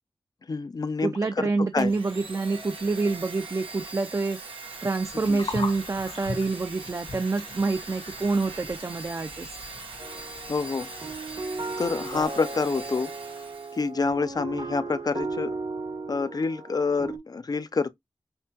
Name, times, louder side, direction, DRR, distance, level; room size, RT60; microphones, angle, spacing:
voice 1, 0.5-1.5 1.7-1.9 5.3-5.4 10.5-10.9 11.8-13.1 13.7-15.6 16.1-17.9, left 4 dB, 45° left, 0.4 m, -27 dB
voice 2, 1.0-4.4 4.8-9.6, right 3 dB, 35° right, 0.4 m, -27 dB
Domestic sounds home sounds, 1.8-13.9, right 3 dB, 90° right, 0.9 m, -41 dB
Gurgling, 5.0-12.3, left 3 dB, 75° left, 1.2 m, -41 dB
sound 1, 10.0-17.2, right 3 dB, 70° right, 1.5 m, -36 dB
5.4 x 2.1 x 2.9 m
wide cardioid pair, 70°, 9 cm